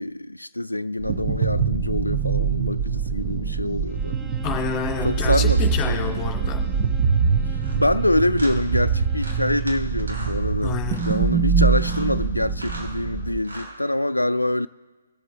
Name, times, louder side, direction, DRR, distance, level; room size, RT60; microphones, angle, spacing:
voice 1, 0.0-4.2 5.0-6.2 7.5-14.7, left 1 dB, 90° left, 0.3 m, -25 dB
sound 1, 1.0-13.4, right 6 dB, 30° right, 0.9 m, -24 dB
Bowed string instrument, 3.9-9.7, left 5 dB, 5° right, 0.6 m, -43 dB
voice 2, 4.4-6.6 10.6-11.0, left 7 dB, 20° left, 2.4 m, -28 dB
sound 2, 7.6-7.8 8.3-8.6 9.2-9.7 10.0-10.4 10.9-11.2 11.7-12.1 12.5-12.9 13.4-13.7, right 1 dB, 75° right, 3.4 m, -38 dB
20.5 x 7.5 x 3.3 m
figure-of-eight pair, 135°, 0 cm